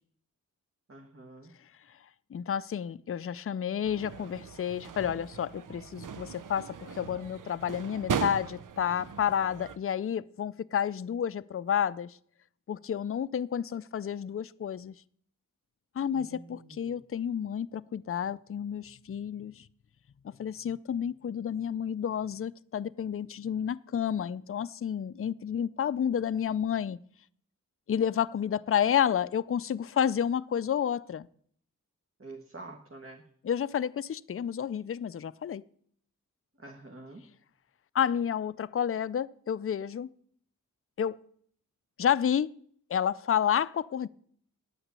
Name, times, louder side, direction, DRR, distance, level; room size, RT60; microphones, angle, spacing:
voice 1, 0.9-1.5 16.1-17.0 32.2-33.2 36.6-37.2, right 2 dB, 40° right, 1.5 m, -47 dB
voice 2, 2.3-12.2 12.7-14.9 16.0-19.7 20.2-27.0 27.9-31.3 33.4-35.6 37.9-40.1 41.0-41.2 42.0-42.5 42.9-44.1, left 8 dB, 45° left, 0.4 m, -30 dB
sound 1, 3.8-9.8, right 7 dB, 70° right, 0.7 m, -38 dB
9.8 x 8.9 x 8.2 m
wide cardioid pair, 80°, 32 cm